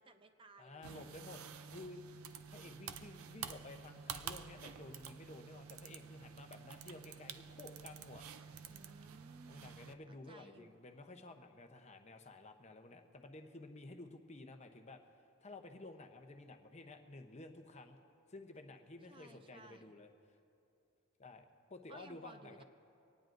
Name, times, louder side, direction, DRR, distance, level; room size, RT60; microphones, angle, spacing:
voice 1, 0.0-0.9 8.7-10.8 19.1-19.9 21.9-22.6, right 3 dB, 25° right, 8 dB, 0.4 m, -59 dB
voice 2, 0.6-2.0 2.5-8.3 9.5-15.0 15.4-18.0 18.3-20.1 21.2-22.6, left 2 dB, 30° left, 5 dB, 0.8 m, -53 dB
sound 1, 0.8-9.9, right 7 dB, 80° right, 0.5 m, -50 dB
24.0 x 18.5 x 2.6 m, 2.7 s
head